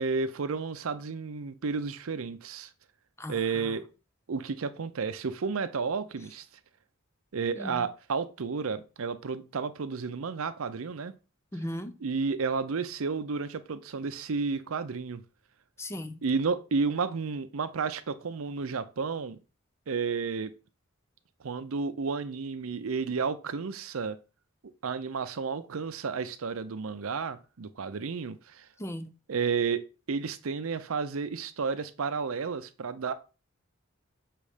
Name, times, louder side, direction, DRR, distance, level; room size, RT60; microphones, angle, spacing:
voice 1, 0.0-2.7 3.3-3.8 4.3-6.4 7.3-11.1 12.0-15.2 16.2-19.4 19.9-20.5 21.4-24.2 24.8-28.7 29.3-33.1, right 5 dB, 75° right, 0.6 m, -32 dB
voice 2, 3.2-3.7 7.5-7.9 11.5-12.0 15.8-16.2 28.8-29.1, left 1 dB, 15° left, 0.5 m, -37 dB
6.7 x 3.1 x 5.0 m
head